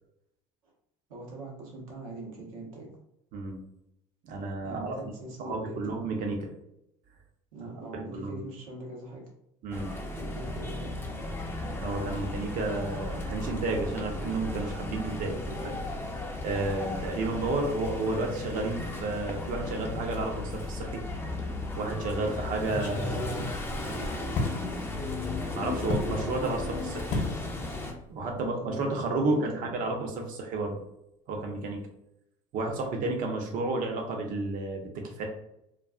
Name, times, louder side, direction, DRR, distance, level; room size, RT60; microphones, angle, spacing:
voice 1, 1.1-3.0 4.6-6.0 7.5-9.3 10.1-11.1 15.2-15.8 22.8-25.1 28.3-29.7, right 2 dB, 80° right, -2 dB, 0.9 m, -42 dB
voice 2, 4.2-4.9 5.4-6.5 7.9-8.4 9.6-9.9 11.8-15.3 16.4-21.0 21.8-23.2 25.5-27.2 27.9-30.8 31.3-31.8 32.5-35.2, right 2 dB, 55° right, 2 dB, 0.7 m, -31 dB
sound 1, 9.7-27.9, left 2 dB, 15° left, 0.5 m, -35 dB
sound 2, 20.7-21.3 21.6-21.7 22.5-24.6 25.9-26.1 27.1-27.4 27.7-28.0 28.3-28.5, left 1 dB, 45° left, 0.8 m, -33 dB
2.4 x 2.3 x 2.3 m, 0.80 s
hypercardioid pair, 75°, 17 cm